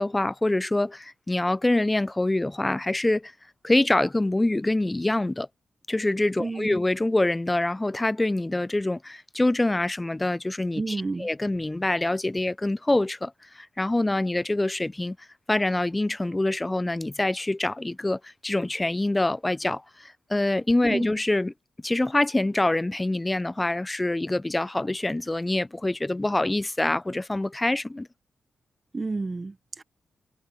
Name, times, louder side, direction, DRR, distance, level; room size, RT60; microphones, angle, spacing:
voice 1, 0.0-3.3 3.6-5.5 5.9-15.2 15.5-21.5 21.8-28.1, left 2 dB, 20° left, 0.4 m, -25 dB
voice 2, 6.4-6.8 10.8-11.3 20.9-21.1 28.9-29.8, right 3 dB, 35° right, 1.1 m, -30 dB
cardioid pair, 55°, 0 cm